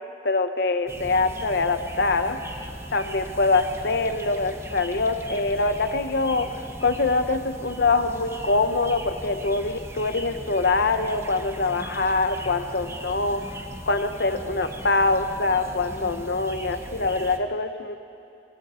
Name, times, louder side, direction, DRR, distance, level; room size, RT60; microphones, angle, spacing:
voice 1, 0.2-2.4 2.9-6.5 6.8-13.4 13.9-17.9, left 3 dB, 60° left, 8 dB, 1.1 m, -24 dB
sound 1, 0.9-17.4, right 1 dB, 15° right, 1.2 m, -39 dB
30.0 x 24.5 x 4.4 m, 2.7 s
head